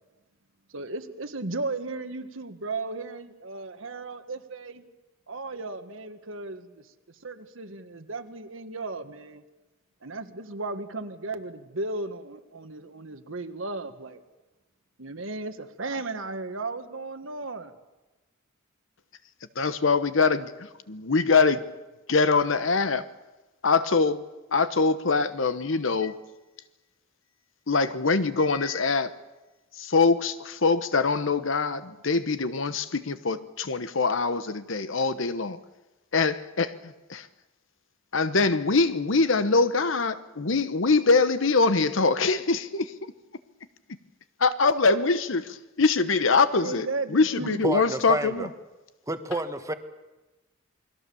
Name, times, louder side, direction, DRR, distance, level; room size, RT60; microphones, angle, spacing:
voice 1, 0.7-4.8 5.3-6.9 7.2-9.4 10.0-14.2 15.0-17.7 46.6-47.7, right 3 dB, 70° right, 8 dB, 1.6 m, -35 dB
voice 2, 19.6-20.5 20.9-21.6 22.1-23.0 23.6-24.2 24.5-26.2 27.7-29.1 29.8-35.6 36.1-36.7 37.1-37.3 38.1-42.9 44.4-48.5, left 4 dB, 65° left, 12 dB, 1.0 m, -23 dB
voice 3, 47.4-48.5 49.1-49.7, right 1 dB, 15° right, 8 dB, 1.3 m, -30 dB
28.5 x 21.5 x 7.0 m, 1.1 s
head